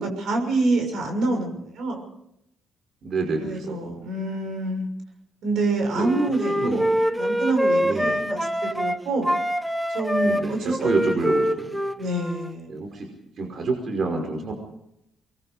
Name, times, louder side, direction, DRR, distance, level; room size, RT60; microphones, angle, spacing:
voice 1, 0.0-2.0 3.4-4.9 5.4-9.3 9.9-10.9 12.0-12.8, right 2 dB, 75° right, 3 dB, 6.4 m, -26 dB
voice 2, 3.0-3.9 5.9-6.1 6.6-6.8 7.8-8.2 10.2-11.8 12.7-13.1 13.4-14.5, right 3 dB, 55° right, 2 dB, 5.3 m, -28 dB
Wind instrument woodwind instrument, 5.9-9.0 9.2-12.5, equal, ahead, 1.3 m, -25 dB
24.0 x 21.5 x 5.1 m, 0.78 s
cardioid pair, 90°, 0 cm